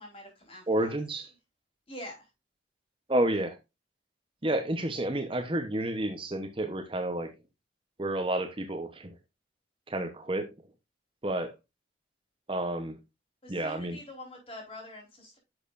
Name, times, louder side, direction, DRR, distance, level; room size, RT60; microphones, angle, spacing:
voice 1, 0.0-0.9 1.9-2.3 13.4-15.4, left 1 dB, 30° left, 4.2 m, -45 dB
voice 2, 0.7-1.3 3.1-3.6 4.4-7.3 8.0-9.1 9.9-10.5 11.2-11.5 12.5-13.0 13.5-14.0, right 1 dB, 25° right, 0.9 m, -30 dB
11.0 x 6.6 x 2.5 m
head